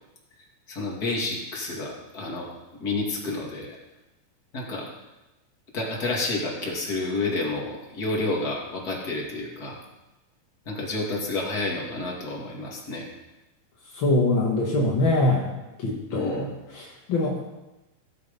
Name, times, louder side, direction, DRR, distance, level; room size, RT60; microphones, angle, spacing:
voice 1, 0.7-2.5 2.8-3.8 4.5-4.9 5.7-9.8 10.7-13.1 16.1-16.5, left 2 dB, 30° left, -2 dB, 2.3 m, -30 dB
voice 2, 13.9-16.5 16.7-17.4, left 2 dB, 55° left, -2 dB, 1.3 m, -24 dB
16.5 x 7.8 x 5.4 m, 1.0 s
omnidirectional pair, 4.4 m